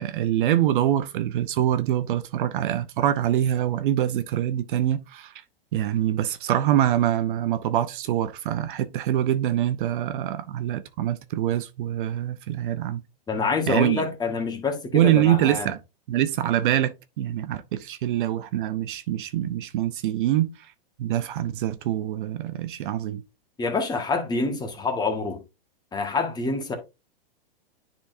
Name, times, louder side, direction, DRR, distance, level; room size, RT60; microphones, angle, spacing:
voice 1, 0.0-5.3 5.7-13.0 13.7-14.0 14.9-15.8 16.1-20.5 21.0-23.2, right 12 dB, 55° right, 0.7 m, -24 dB
voice 2, 13.3-15.7 23.6-25.4 25.9-26.7, left 4 dB, 15° left, 1.6 m, -26 dB
10.5 x 4.4 x 2.6 m
hypercardioid pair, 130°, 30 cm